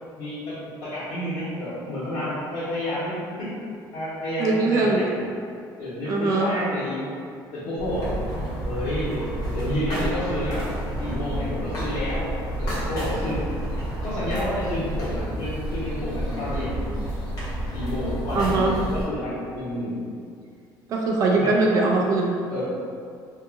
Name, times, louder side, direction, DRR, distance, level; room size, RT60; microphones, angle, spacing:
voice 1, 0.2-3.5 3.9-5.2 5.8-7.0 7.5-8.1 8.6-9.3 9.5-10.6 11.0-12.3 12.6-13.4 14.0-16.8 17.7-19.9 21.3-21.5 22.5-22.6, left 1 dB, 70° left, -15 dB, 1.2 m, -30 dB
voice 2, 4.4-5.0 6.1-6.5 18.3-18.7 20.9-22.4, right 3 dB, 45° right, -1 dB, 0.3 m, -21 dB
sound 1, 7.8-19.0, right 1 dB, 50° left, 0.8 m, -30 dB
2.7 x 2.5 x 2.5 m, 2.3 s
cardioid pair, 165°, 8 cm